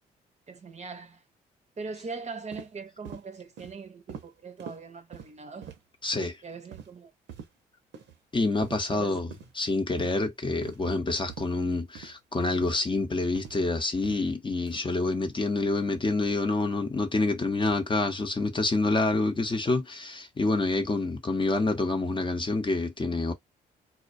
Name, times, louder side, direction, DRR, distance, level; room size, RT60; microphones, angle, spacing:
voice 1, 0.5-1.2 1.8-5.7 6.4-7.1 8.9-9.3, right 4 dB, 35° right, 0.7 m, -41 dB
sound 1, 2.5-2.7 3.0-3.2 3.6-3.7 4.1-4.3 4.6-4.8 5.1-5.3 5.6-5.8 6.1-6.3 6.7-6.9 7.3-7.5 7.9-8.1 8.6-8.8 9.3-9.5 10.0-10.2 10.6-10.8 11.3-11.5 11.9-12.1 12.6-12.8 13.4-13.6 14.0-14.2 14.7-14.8, right 7 dB, 70° right, 0.7 m, -43 dB
voice 2, 6.0-6.4 8.3-23.3, left 2 dB, 25° left, 0.7 m, -27 dB
2.3 x 2.1 x 2.5 m
supercardioid pair, 50°, 20 cm